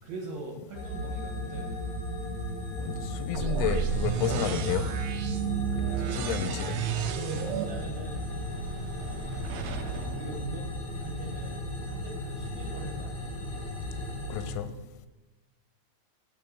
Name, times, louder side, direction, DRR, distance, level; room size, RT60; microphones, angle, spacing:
voice 1, 0.0-2.0 6.0-6.2 7.2-8.3 9.9-10.7 11.0-13.5, right 3 dB, 65° right, 2.6 m, -42 dB
sound 1, 0.7-14.5, left 1 dB, 60° left, 1.4 m, -36 dB
voice 2, 2.8-4.9 5.7-5.8 6.2-6.8 14.3-14.7, left 9 dB, 90° left, 3.1 m, -31 dB
sound 2, 3.3-11.2, right 8 dB, 80° right, 2.4 m, -33 dB
7.6 x 4.7 x 6.6 m
omnidirectional pair, 5.3 m